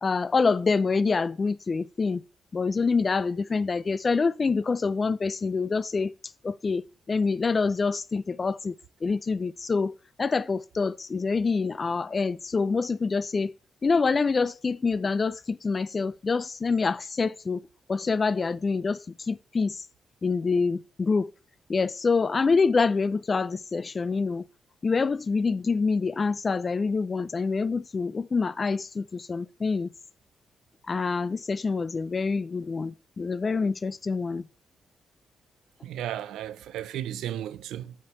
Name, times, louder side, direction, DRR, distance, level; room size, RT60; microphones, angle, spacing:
voice 1, 0.0-2.2 2.5-6.1 6.4-8.7 9.0-13.5 13.8-19.8 20.2-21.3 21.7-24.5 24.8-29.9 30.9-34.4, left 4 dB, 45° left, 0.5 m, -26 dB
voice 2, 35.8-37.9, right 11 dB, 80° right, 0.4 m, -34 dB
6.7 x 5.1 x 6.7 m
hypercardioid pair, 40°, 0 cm